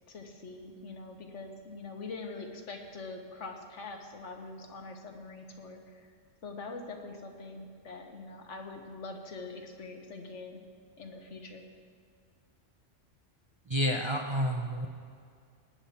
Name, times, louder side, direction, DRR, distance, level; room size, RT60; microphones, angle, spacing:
voice 1, 0.1-6.1 6.4-10.6 11.0-11.6, left 3 dB, 70° left, 4 dB, 1.5 m, -44 dB
voice 2, 13.7-14.9, equal, 30° right, 2 dB, 0.6 m, -29 dB
18.0 x 9.8 x 4.3 m, 2.2 s
omnidirectional pair, 1.3 m